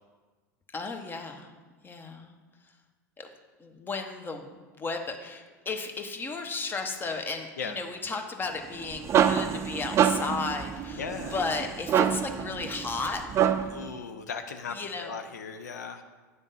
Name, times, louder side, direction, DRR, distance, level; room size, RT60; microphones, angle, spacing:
voice 1, 0.7-1.5 1.8-2.3 3.2-3.3 3.6-11.1 11.3-13.2 14.7-15.1, left 4 dB, 25° left, 5 dB, 0.9 m, -34 dB
sound 1, 8.6-13.9, right 9 dB, 30° right, 0.4 m, -26 dB
voice 2, 10.9-11.4 13.7-16.0, left 5 dB, 85° left, 8 dB, 0.5 m, -37 dB
9.4 x 3.5 x 5.5 m, 1.3 s
hypercardioid pair, 90°, 9 cm